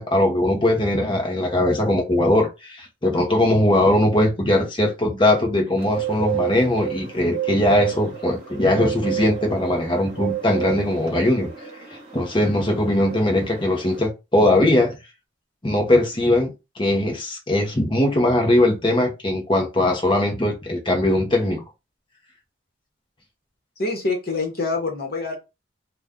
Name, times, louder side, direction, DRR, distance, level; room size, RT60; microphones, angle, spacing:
voice 1, 0.0-11.5 12.1-15.0 15.6-21.6, left 1 dB, 25° left, 0.8 m, -20 dB
Bird, 5.8-14.1, right 10 dB, 35° right, 1.5 m, -31 dB
voice 2, 23.8-25.4, left 3 dB, 50° left, 1.1 m, -25 dB
2.6 x 2.3 x 3.5 m
head